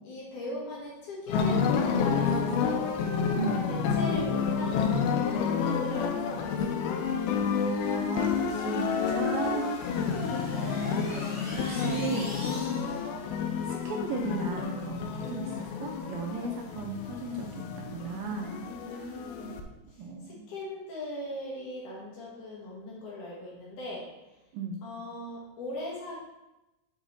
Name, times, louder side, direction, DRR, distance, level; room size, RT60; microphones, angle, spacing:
voice 1, 0.0-2.9 3.3-6.8 9.8-10.6 12.7-12.9 15.2-15.5 18.7-19.7 20.3-24.0 24.8-26.2, left 1 dB, 65° left, -4 dB, 2.3 m, -40 dB
sound 1, 1.3-19.6, left 6 dB, 80° left, 2.4 m, -29 dB
voice 2, 3.3-3.7 7.6-9.8 10.5-11.3 11.7-12.4 13.6-19.2 20.0-20.5 24.5-24.8, right 4 dB, 80° right, 2 dB, 2.2 m, -36 dB
sound 2, 7.3-13.2, left 1 dB, 15° left, 1.0 m, -46 dB
6.1 x 4.9 x 4.0 m, 0.98 s
omnidirectional pair, 4.5 m